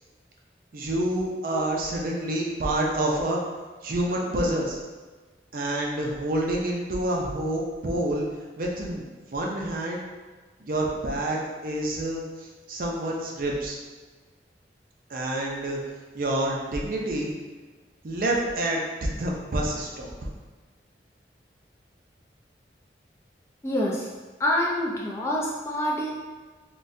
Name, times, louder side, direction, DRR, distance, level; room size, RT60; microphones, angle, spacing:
voice 1, 0.7-3.4 3.8-4.8 5.5-8.2 8.6-10.0 10.6-13.8 15.1-15.8 16.1-17.3 18.0-20.1, right 1 dB, 50° right, -2 dB, 0.5 m, -28 dB
voice 2, 23.6-24.1 24.4-26.1, left 1 dB, 15° left, -4 dB, 0.3 m, -27 dB
3.8 x 2.2 x 2.5 m, 1.4 s
head